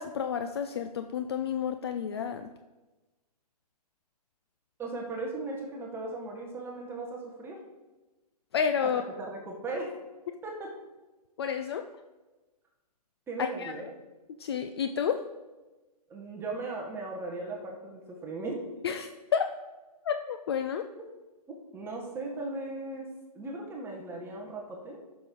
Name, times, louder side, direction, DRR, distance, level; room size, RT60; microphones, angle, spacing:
voice 1, 0.0-2.5 8.5-9.0 11.4-11.9 13.4-13.7 14.4-15.2 18.8-19.1 19.3-19.5 20.0-20.9, left 7 dB, 40° left, 8 dB, 0.4 m, -30 dB
voice 2, 4.8-7.6 8.8-8.9 9.2-9.9 10.4-10.7 13.3-13.9 16.1-18.6 21.0-21.1 21.5-23.1 23.3-25.0, right 2 dB, 10° right, 0 dB, 1.1 m, -37 dB
14.0 x 6.0 x 3.8 m, 1.2 s
figure-of-eight pair, 130°, 21 cm